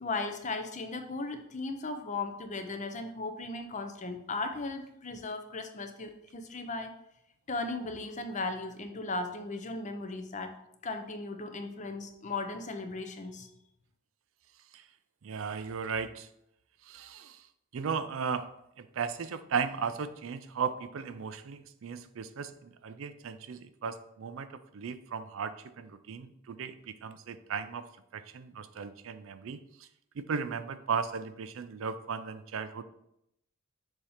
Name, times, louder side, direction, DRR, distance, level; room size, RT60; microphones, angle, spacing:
voice 1, 0.0-6.9 7.5-10.5 10.8-13.5, left 3 dB, 35° left, 6 dB, 0.6 m, -37 dB
voice 2, 15.2-16.3 16.8-17.5 17.7-18.5 18.8-27.9 28.1-29.9 30.2-32.8, right 6 dB, 70° right, 12 dB, 0.4 m, -36 dB
7.2 x 2.8 x 4.9 m, 0.79 s
head